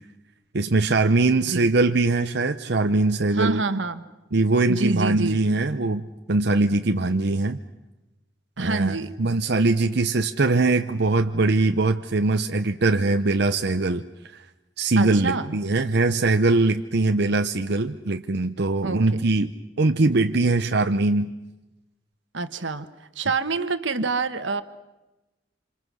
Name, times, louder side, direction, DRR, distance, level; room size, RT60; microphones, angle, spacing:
voice 1, 0.5-3.6 4.3-7.6 8.6-14.0 14.8-19.5 19.8-21.3, right 3 dB, 60° right, 6 dB, 0.8 m, -22 dB
voice 2, 3.3-4.0 4.7-5.4 8.6-9.1 15.0-15.6 18.8-19.2 22.3-22.9 23.1-24.6, right 3 dB, 85° right, 10 dB, 1.4 m, -27 dB
27.5 x 26.5 x 6.3 m, 1.0 s
head